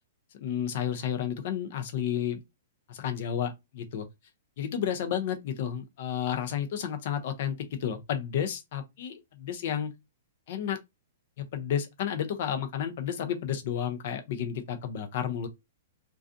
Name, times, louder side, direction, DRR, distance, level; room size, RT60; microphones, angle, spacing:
voice 1, 0.4-2.4 2.9-4.1 4.6-9.9 10.5-10.8 11.4-15.5, left 9 dB, 40° left, 0.4 m, -31 dB
2.5 x 2.3 x 2.4 m
hypercardioid pair, 175°, 0 cm